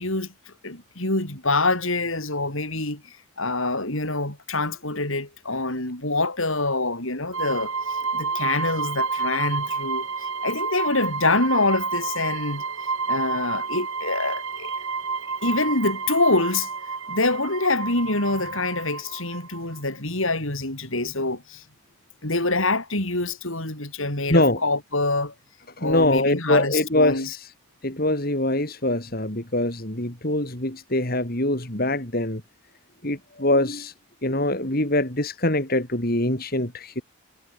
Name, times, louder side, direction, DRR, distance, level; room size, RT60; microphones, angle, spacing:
voice 1, 0.0-10.1 10.4-12.6 13.1-14.7 15.4-16.7 17.1-21.6 22.2-25.3 25.8-27.3, left 2 dB, 70° left, 6.4 m, -25 dB
sound 1, 7.3-19.8, right 4 dB, 75° right, 4.5 m, -30 dB
voice 2, 24.3-24.6 25.8-27.5 27.8-32.4 33.0-33.9 34.2-37.0, left 1 dB, 45° left, 3.6 m, -23 dB
head